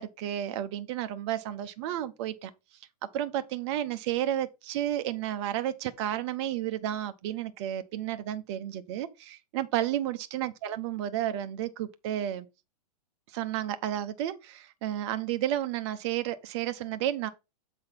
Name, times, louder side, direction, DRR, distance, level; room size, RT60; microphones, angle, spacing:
voice 1, 0.0-2.5 3.1-12.5 13.3-17.3, right 12 dB, 40° right, 0.9 m, -32 dB
7.8 x 4.0 x 5.3 m
hypercardioid pair, 145°, 21 cm